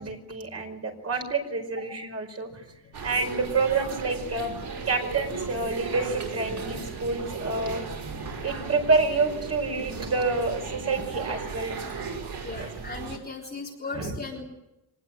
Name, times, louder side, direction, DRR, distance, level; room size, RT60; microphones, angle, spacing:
voice 1, 0.0-2.6 3.0-4.6 4.9-7.8 8.4-11.8 12.6-12.7 13.9-14.1, right 3 dB, 40° right, 4 dB, 5.1 m, -28 dB
sound 1, 2.9-13.2, right 5 dB, 80° right, 5.7 m, -36 dB
voice 2, 12.4-14.5, left 3 dB, 25° left, -1 dB, 3.9 m, -37 dB
24.5 x 19.5 x 9.0 m, 0.89 s
wide cardioid pair, 170°, 39 cm